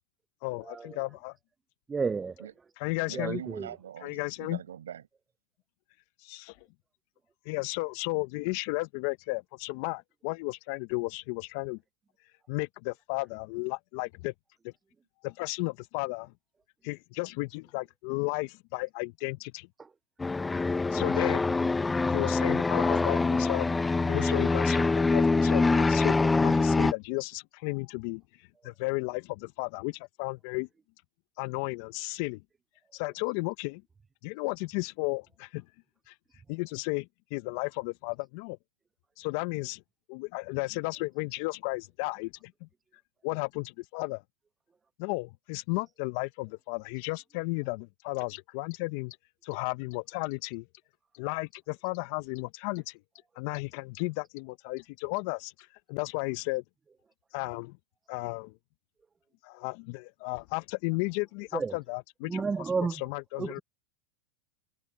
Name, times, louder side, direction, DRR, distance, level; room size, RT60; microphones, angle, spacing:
voice 1, 0.4-1.3 2.8-3.4 4.0-4.6 6.2-6.6 7.5-11.8 12.5-14.3 15.2-16.3 16.8-19.7 20.9-21.5 22.1-23.7 24.1-28.2 28.6-30.7 31.4-32.4 32.9-33.8 34.2-35.6 36.1-36.2 36.5-38.6 39.2-39.8 40.1-42.3 42.6-42.7 43.2-44.2 45.0-49.2 49.4-50.6 51.1-53.0 53.4-56.6 57.3-57.8 58.1-58.5 59.4-63.6, left 26 dB, 60° left, 0.7 m, -34 dB
voice 2, 1.9-2.3 3.2-3.4 61.5-61.7 62.3-62.9, right 5 dB, 20° right, 0.4 m, -29 dB
voice 3, 3.1-5.0, right 10 dB, 85° right, 6.2 m, -43 dB
sound 1, 20.2-26.9, left 3 dB, 15° left, 0.7 m, -25 dB
hypercardioid pair, 100°, 0 cm